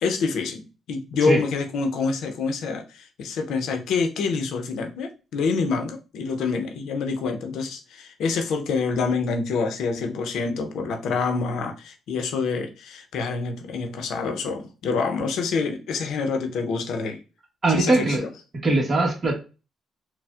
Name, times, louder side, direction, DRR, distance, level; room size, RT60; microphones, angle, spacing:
voice 1, 0.0-17.2 17.7-18.3, left 4 dB, 80° left, 6 dB, 0.5 m, -27 dB
voice 2, 17.6-18.2 18.6-19.3, right 2 dB, 35° right, 2 dB, 1.0 m, -21 dB
4.2 x 2.0 x 2.3 m, 0.32 s
cardioid pair, 100°, 0 cm